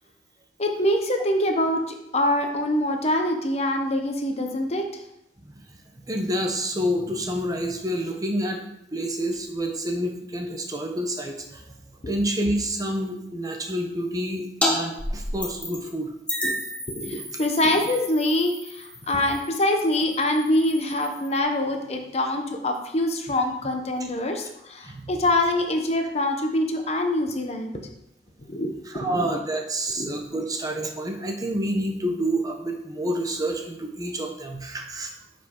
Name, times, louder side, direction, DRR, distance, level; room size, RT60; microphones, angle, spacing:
voice 1, 0.6-5.0 12.0-12.1 16.4-16.5 16.9-27.8 28.5-28.7 28.9-29.3 30.0-30.1, left 1 dB, 40° left, 4 dB, 0.9 m, -25 dB
voice 2, 6.0-8.6 8.9-11.7 12.1-16.1 24.8-25.1 28.9-35.1, right 1 dB, 20° right, 3 dB, 0.9 m, -28 dB
sound 1, 14.6-14.7 15.0-15.9 16.3-21.4, left 1 dB, 5° left, 1.5 m, -32 dB
9.7 x 5.1 x 3.8 m, 0.82 s
head